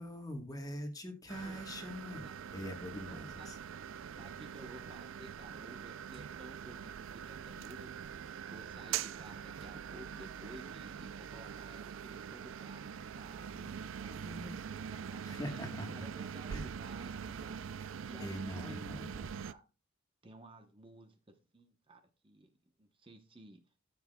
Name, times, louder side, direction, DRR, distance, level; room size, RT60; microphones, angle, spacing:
voice 1, 0.0-2.3 2.5-3.6 15.2-16.1 16.5-16.6 18.2-19.2, equal, 20° left, 5 dB, 1.3 m, -43 dB
sound 1, 1.3-19.5, right 7 dB, 70° right, 0.4 m, -43 dB
voice 2, 3.1-3.5 4.2-14.6 14.9-15.0 15.5-17.6 18.1-19.6 20.2-23.6, right 1 dB, 25° right, 6 dB, 0.9 m, -54 dB
14.0 x 7.3 x 2.2 m, 0.30 s
head